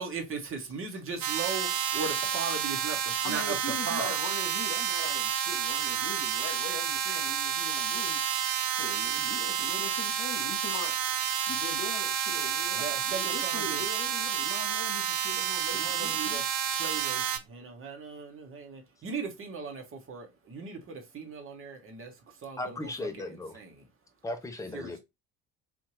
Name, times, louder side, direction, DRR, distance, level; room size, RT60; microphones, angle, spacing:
voice 1, 0.0-3.5 3.9-4.1 12.8-13.8 15.7-16.4 16.8-17.2 17.5-22.1 22.4-22.6 23.5-23.7 24.7-24.9, right 5 dB, 25° right, 0.9 m, -37 dB
sound 1, 1.2-17.4, right 9 dB, 50° right, 0.6 m, -30 dB
voice 2, 3.2-8.2 8.7-11.0 11.5-16.4, left 6 dB, 50° left, 0.9 m, -41 dB
voice 3, 22.6-23.6 24.2-25.0, left 2 dB, 5° left, 0.5 m, -36 dB
2.7 x 2.1 x 2.9 m
figure-of-eight pair, 50°, 49 cm